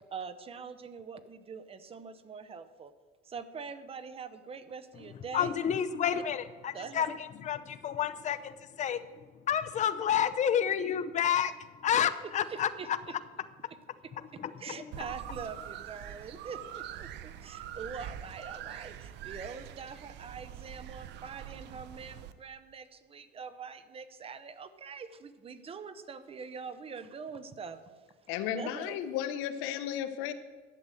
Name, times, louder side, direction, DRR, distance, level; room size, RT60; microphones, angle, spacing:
voice 1, 0.1-2.9 3.3-5.5 6.7-7.1 12.2-13.1 14.3-27.8 28.5-29.0, right 5 dB, 30° right, 12 dB, 0.8 m, -44 dB
voice 2, 5.3-9.0 9.5-11.5 11.8-13.0 14.2-14.9, left 9 dB, 35° left, 13 dB, 0.6 m, -30 dB
sound 1, 14.9-22.3, right 10 dB, 60° right, 0.7 m, -44 dB
voice 3, 28.3-30.3, left 10 dB, 80° left, 11 dB, 1.0 m, -34 dB
11.5 x 7.9 x 7.6 m, 1.4 s
cardioid pair, 140°, 20 cm